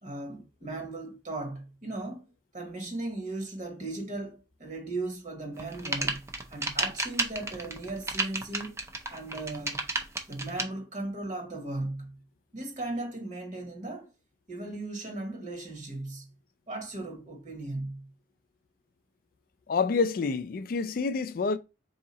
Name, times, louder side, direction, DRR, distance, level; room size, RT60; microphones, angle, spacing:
voice 1, 0.0-6.2 6.5-8.8 9.1-9.8 10.3-12.2 12.5-14.1 14.5-16.3 16.7-18.1, right 2 dB, 40° right, 1.1 m, -37 dB
sound 1, 5.6-10.6, right 2 dB, 15° right, 0.5 m, -31 dB
voice 2, 19.7-21.6, left 4 dB, 50° left, 0.3 m, -27 dB
3.8 x 2.8 x 3.9 m
head